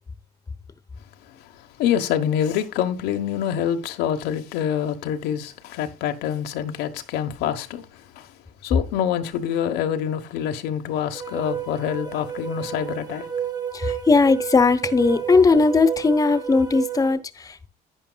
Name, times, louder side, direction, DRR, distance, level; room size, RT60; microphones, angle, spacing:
voice 1, 1.8-8.3 8.6-13.3 13.9-14.0, left 9 dB, 90° left, 1.1 m, -26 dB
sound 1, 11.1-17.1, right 8 dB, 25° right, 1.8 m, -31 dB
voice 2, 13.7-17.7, left 4 dB, 20° left, 0.9 m, -18 dB
11.0 x 9.1 x 2.3 m
cardioid pair, 110°, 17 cm